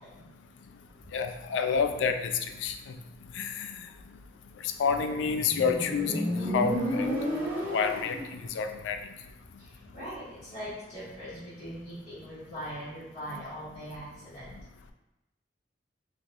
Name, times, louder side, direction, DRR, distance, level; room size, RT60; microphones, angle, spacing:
voice 1, 1.1-2.3 2.6-2.7 3.4-3.7 4.8-7.1 7.7-8.2 8.6-9.0, left 6 dB, 85° left, 8 dB, 0.3 m, -28 dB
Motorcycle, 4.9-8.4, equal, 15° right, 0.7 m, -32 dB
voice 2, 9.9-14.1 14.3-14.5, equal, 35° left, -16 dB, 1.4 m, -40 dB
3.2 x 2.7 x 2.5 m, 0.96 s
head